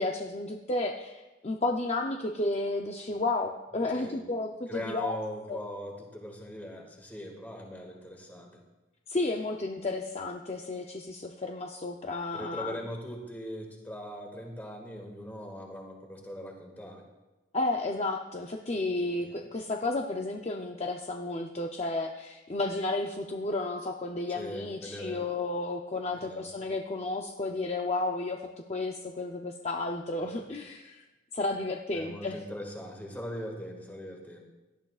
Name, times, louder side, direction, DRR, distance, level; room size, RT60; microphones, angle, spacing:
voice 1, 0.0-5.2 5.5-5.6 9.1-12.8 17.5-28.4 28.7-31.0 31.3-32.4, left 2 dB, 35° left, 2 dB, 0.6 m, -32 dB
voice 2, 4.7-8.6 12.3-17.1 19.2-19.4 24.4-25.2 26.2-26.5 30.2-30.5 31.9-34.4, equal, 10° left, 1 dB, 1.9 m, -40 dB
17.5 x 11.5 x 2.4 m, 1.1 s
head